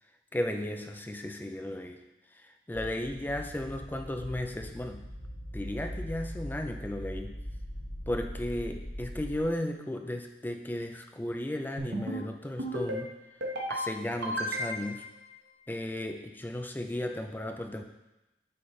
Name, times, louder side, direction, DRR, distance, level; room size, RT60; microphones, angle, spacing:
voice 1, 0.3-2.0 2.3-5.0 5.5-7.4 8.1-13.2 13.7-15.1 15.7-17.8, left 1 dB, 10° left, 5 dB, 0.4 m, -35 dB
sound 1, 2.7-9.4, equal, 80° left, 1.3 m, -41 dB
sound 2, 11.8-12.2 12.6-13.0 13.4-13.8 14.2-15.0, right 1 dB, 85° right, 1.1 m, -33 dB
7.6 x 3.9 x 4.0 m, 0.99 s
head